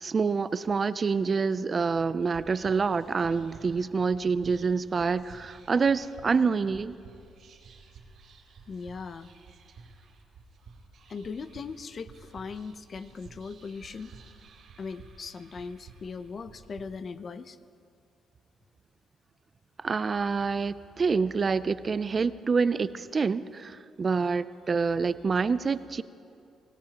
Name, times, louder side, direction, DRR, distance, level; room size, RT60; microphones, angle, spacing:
voice 1, 0.0-7.0 19.8-26.0, right 5 dB, 35° right, 15 dB, 0.4 m, -27 dB
Whispering, 2.2-16.8, right 4 dB, 70° right, 2.5 m, -53 dB
voice 2, 8.7-9.3 11.1-14.2 14.8-17.6, left 5 dB, 45° left, 13 dB, 0.6 m, -39 dB
25.0 x 17.5 x 2.9 m, 2.5 s
cardioid pair, 90°, 0 cm